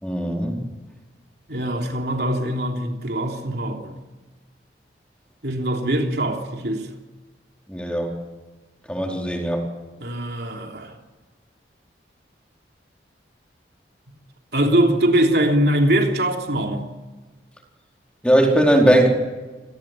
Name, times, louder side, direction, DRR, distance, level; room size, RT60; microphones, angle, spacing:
voice 1, 0.0-0.6 7.7-8.1 8.9-9.6 18.2-19.1, right 1 dB, 5° left, 4.3 m, -19 dB
voice 2, 1.5-4.0 5.4-6.9 10.0-10.9 14.5-16.9, right 1 dB, 60° right, 3.4 m, -22 dB
28.5 x 19.0 x 9.2 m
head